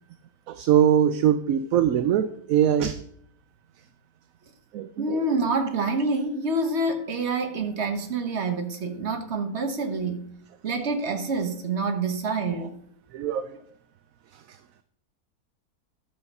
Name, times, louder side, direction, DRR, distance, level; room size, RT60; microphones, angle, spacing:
voice 1, 0.5-3.0 4.7-5.1 13.1-13.5, right 9 dB, 70° right, 1.0 m, -22 dB
voice 2, 5.0-10.3 10.6-12.8, right 3 dB, 50° right, 1.4 m, -27 dB
12.0 x 6.4 x 5.4 m
omnidirectional pair, 1.6 m